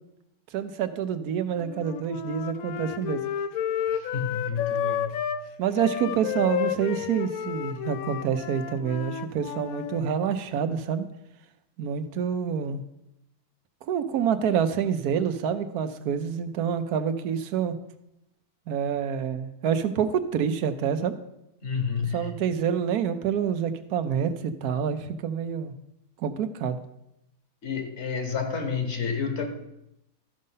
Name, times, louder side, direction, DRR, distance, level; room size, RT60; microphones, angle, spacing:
voice 1, 0.5-3.2 5.6-11.1 11.8-12.8 13.9-17.7 18.7-21.1 22.1-25.7 26.2-26.8, right 8 dB, 85° right, 10 dB, 1.2 m, -27 dB
Wind instrument woodwind instrument, 1.6-5.4 5.7-10.0, left 9 dB, 75° left, 1.0 m, -31 dB
voice 2, 3.9-5.3 21.6-22.4 27.6-29.5, left 5 dB, 50° left, 6 dB, 1.3 m, -30 dB
12.5 x 5.3 x 5.5 m, 0.85 s
omnidirectional pair, 1.6 m